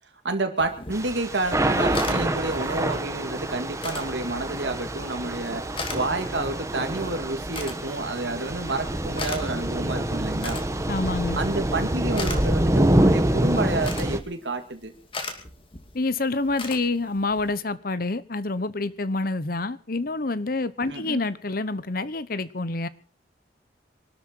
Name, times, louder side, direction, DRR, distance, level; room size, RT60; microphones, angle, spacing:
voice 1, 0.2-10.6 11.3-14.9 20.8-21.2, right 2 dB, 85° right, 6 dB, 2.2 m, -29 dB
sound 1, 0.6-17.5, left 4 dB, 30° left, 2.6 m, -41 dB
Thunder / Rain, 0.9-14.2, right 1 dB, 15° right, 1.2 m, -26 dB
voice 2, 10.9-11.4 15.9-22.9, left 3 dB, 50° left, 16 dB, 1.0 m, -27 dB
24.0 x 12.5 x 4.6 m, 0.41 s
head